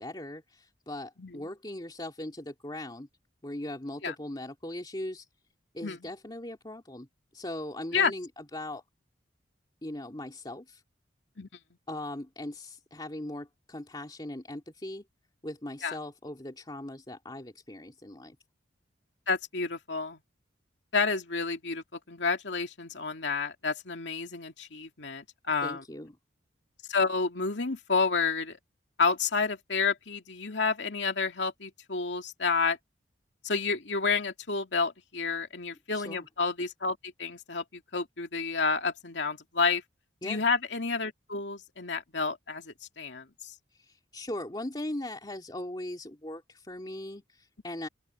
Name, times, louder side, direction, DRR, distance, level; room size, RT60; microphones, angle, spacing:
voice 1, 0.0-3.1 3.4-5.3 5.7-7.1 7.3-8.8 9.8-10.8 11.9-15.0 15.4-18.4 25.6-26.2 35.9-36.3 40.2-40.4 43.7-47.9, left 1 dB, 25° left, 2.7 m, -39 dB
voice 2, 19.3-20.2 20.9-25.8 26.9-28.6 29.0-32.8 33.4-39.8 40.2-43.5, left 4 dB, 75° left, 2.4 m, -30 dB
open air
head